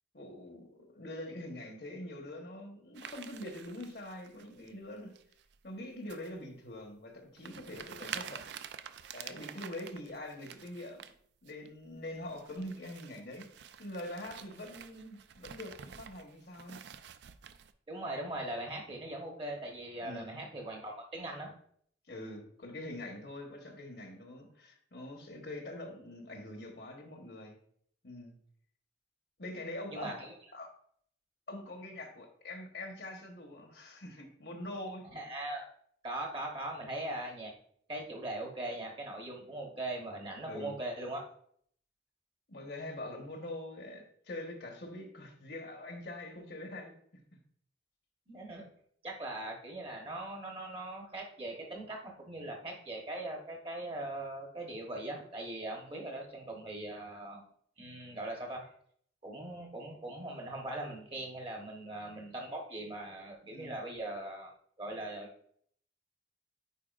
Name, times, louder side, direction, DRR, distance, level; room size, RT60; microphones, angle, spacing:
voice 1, 0.1-5.1 5.6-8.6 9.1-11.0 11.4-13.5 13.8-16.8 20.0-20.4 22.1-27.6 28.0-28.4 29.4-30.7 31.5-35.0 40.4-40.8 42.5-46.9 63.4-63.8, left 1 dB, 60° left, 3 dB, 1.2 m, -44 dB
sound 1, 3.0-4.7 5.2-5.6 6.1-6.3 6.8-6.9 7.4-11.1 11.5-11.7 12.1-17.7, right 8 dB, 70° right, 0.4 m, -48 dB
voice 2, 17.9-21.5 29.9-30.3 35.1-35.7 36.0-37.5 37.9-41.2 48.3-48.7 49.0-57.4 57.8-58.6 59.2-64.5 64.8-65.3, right 1 dB, 30° right, 0 dB, 1.1 m, -40 dB
8.5 x 4.8 x 2.5 m, 0.63 s
head